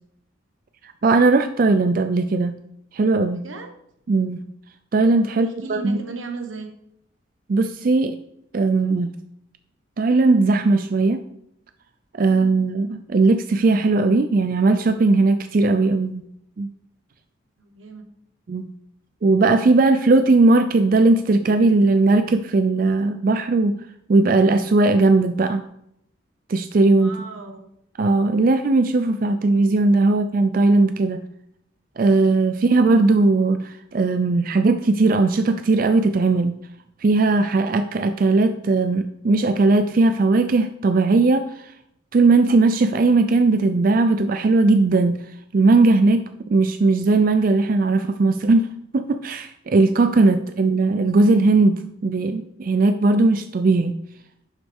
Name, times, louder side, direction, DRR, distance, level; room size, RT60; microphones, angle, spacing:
voice 1, 1.0-2.6 2.9-3.4 4.1-4.4 4.9-6.0 7.5-8.2 8.5-9.2 10.0-11.2 12.1-16.2 16.6-16.7 18.5-18.7 19.2-23.8 24.1-25.6 26.5-27.2 28.0-31.2 32.0-36.6 37.0-41.7 42.1-45.2 45.5-54.0, right 3 dB, 45° right, 9 dB, 0.4 m, -18 dB
voice 2, 3.3-3.7 5.3-6.7 12.2-12.5 17.6-18.0 27.0-27.6 50.5-50.6, right 4 dB, 80° right, 4 dB, 1.4 m, -36 dB
10.5 x 6.0 x 3.6 m, 0.76 s
head